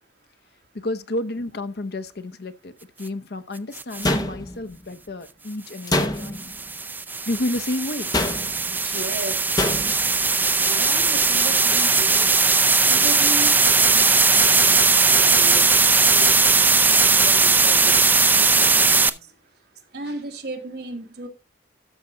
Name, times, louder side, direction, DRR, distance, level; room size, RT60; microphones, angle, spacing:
voice 1, 0.7-2.7 3.0-6.5 7.3-8.1, left 1 dB, 60° left, 0.7 m, -30 dB
sound 1, 3.8-4.1 6.2-19.1, right 4 dB, 10° right, 0.4 m, -18 dB
sound 2, 4.0-4.8 5.9-6.6 8.1-8.7 9.6-10.1, left 1 dB, 20° left, 0.9 m, -25 dB
voice 2, 8.7-9.4 10.7-12.3 12.9-15.7 16.1-19.2 19.9-21.3, right 1 dB, 60° right, 1.8 m, -36 dB
13.0 x 5.5 x 3.8 m
head